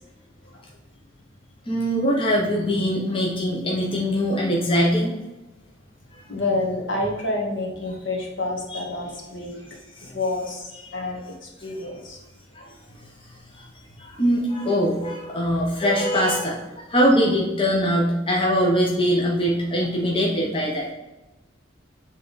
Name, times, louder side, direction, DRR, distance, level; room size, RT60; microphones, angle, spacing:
voice 1, 1.7-5.1 6.1-6.2 10.0-10.1 12.5-12.7 13.5-13.7 14.0-20.9, equal, 30° left, -2 dB, 0.9 m, -22 dB
voice 2, 6.3-9.6 10.1-12.2, left 2 dB, 70° left, -1 dB, 1.6 m, -28 dB
7.3 x 3.6 x 4.0 m, 1.1 s
head